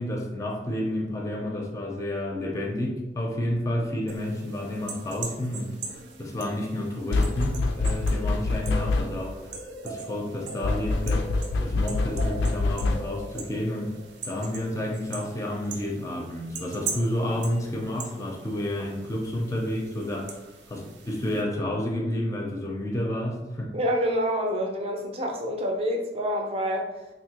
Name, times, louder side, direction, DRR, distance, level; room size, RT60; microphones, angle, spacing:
voice 1, 0.0-9.5 9.8-13.9 14.2-23.8, left 1 dB, 20° left, 1 dB, 0.4 m, -30 dB
sound 1, 4.1-21.4, right 3 dB, 85° right, 0.5 m, -40 dB
sound 2, 7.1-9.4 10.6-13.3, left 3 dB, 80° left, 0.3 m, -26 dB
voice 2, 23.7-26.9, equal, 35° right, 2 dB, 0.5 m, -27 dB
3.5 x 2.6 x 2.8 m, 1.0 s
head